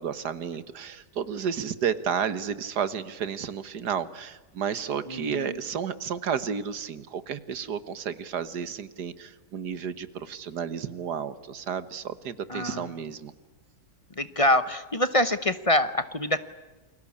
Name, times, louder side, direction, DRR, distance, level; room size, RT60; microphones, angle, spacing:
voice 1, 0.0-13.3, right 7 dB, 80° right, 14 dB, 1.9 m, -32 dB
voice 2, 5.1-5.6 12.5-12.9 14.2-16.4, left 1 dB, 25° left, 13 dB, 0.8 m, -25 dB
29.5 x 22.5 x 8.6 m, 1.2 s
omnidirectional pair, 1.7 m